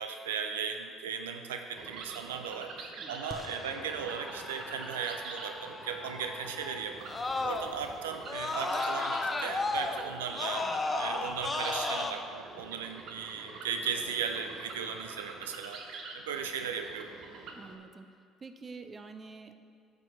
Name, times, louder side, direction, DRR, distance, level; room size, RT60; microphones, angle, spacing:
voice 1, 0.0-10.7 11.0-17.1, right 6 dB, 85° right, 6 dB, 0.4 m, -37 dB
sound 1, 1.8-17.8, right 4 dB, 65° right, 0.9 m, -46 dB
Screaming, 3.3-7.9 8.3-12.1, left 3 dB, 30° left, 0.7 m, -35 dB
voice 2, 17.5-18.1 18.4-19.5, right 4 dB, 30° right, 8 dB, 0.6 m, -47 dB
8.9 x 6.8 x 4.1 m, 2.3 s
hypercardioid pair, 55°, 0 cm